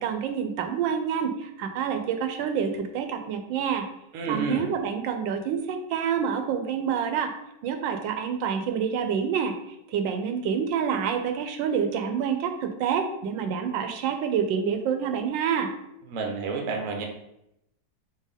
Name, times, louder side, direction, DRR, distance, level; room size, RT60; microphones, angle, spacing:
voice 1, 0.0-3.9 4.3-7.3 7.6-9.5 9.9-15.7, right 7 dB, 85° right, 6 dB, 1.3 m, -27 dB
voice 2, 4.1-4.7 16.1-17.1, right 4 dB, 60° right, 3 dB, 0.9 m, -29 dB
4.4 x 3.2 x 3.5 m, 0.82 s
omnidirectional pair, 2.0 m